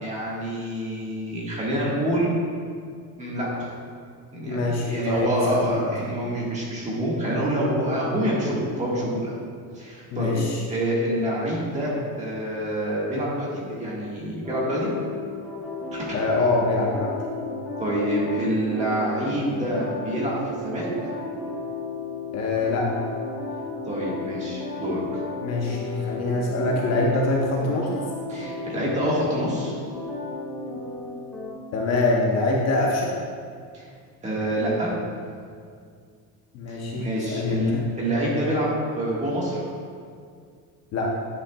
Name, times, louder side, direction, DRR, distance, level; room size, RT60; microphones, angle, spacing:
voice 1, 0.0-2.3 3.2-3.7 4.3-9.3 9.7-10.4 10.7-14.9 15.9-16.1 17.8-20.9 23.8-25.2 28.3-29.8 33.7-33.9 34.2-35.0 36.7-39.6, right 1 dB, 15° right, -6 dB, 1.6 m, -27 dB
voice 2, 4.5-5.9 10.1-10.6 16.1-17.1 22.3-23.0 25.4-27.9 31.7-33.1 36.5-37.8 40.9-41.1, left 2 dB, 40° left, -2 dB, 0.8 m, -24 dB
sound 1, 14.4-31.5, left 3 dB, ahead, 1.9 m, -34 dB
10.0 x 8.3 x 2.3 m, 2.2 s
cardioid pair, 170°, 42 cm